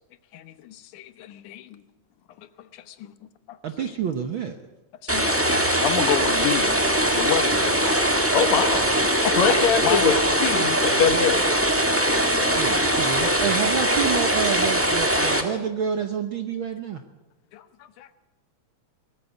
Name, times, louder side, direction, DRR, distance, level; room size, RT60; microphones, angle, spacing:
voice 1, 0.3-1.8 2.4-2.8 3.5-3.9 5.0-8.0 9.2-9.3 9.8-10.3 12.3-13.4 17.5-18.1, left 10 dB, 85° left, 2.5 m, -31 dB
voice 2, 3.6-4.6 12.5-17.0, right 7 dB, 65° right, 1.3 m, -28 dB
sound 1, 5.1-15.4, right 1 dB, 5° right, 1.0 m, -21 dB
voice 3, 8.3-10.1 10.4-11.6, left 6 dB, 65° left, 2.9 m, -23 dB
20.0 x 14.0 x 9.3 m
omnidirectional pair, 3.5 m